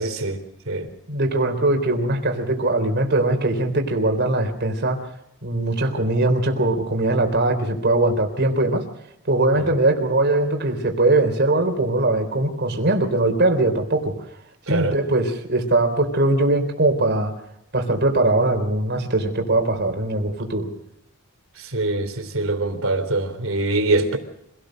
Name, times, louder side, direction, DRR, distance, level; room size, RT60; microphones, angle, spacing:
voice 1, 0.0-0.9 9.5-9.7 14.7-15.0 21.6-24.2, right 2 dB, 65° right, 3.6 m, -24 dB
voice 2, 1.1-5.0 5.4-8.8 9.3-14.1 14.7-17.3 17.7-20.7, right 2 dB, 50° right, 3.7 m, -21 dB
26.0 x 18.0 x 6.5 m
head